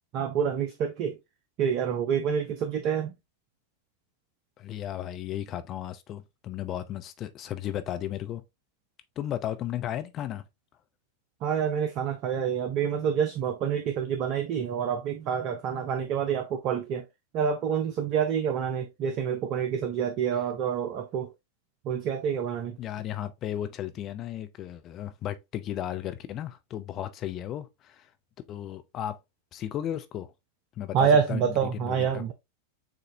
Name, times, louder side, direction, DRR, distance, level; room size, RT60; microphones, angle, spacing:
voice 1, 0.1-1.2 1.6-3.2 11.4-17.0 17.3-21.3 21.8-22.8 30.9-32.3, right 7 dB, 40° right, 0.5 m, -27 dB
voice 2, 4.6-8.4 9.2-10.4 22.8-28.1 28.5-29.2 29.5-30.3 30.8-31.4 31.7-32.2, left 11 dB, 30° left, 0.5 m, -35 dB
7.1 x 2.6 x 2.7 m
figure-of-eight pair, 90°, 0 cm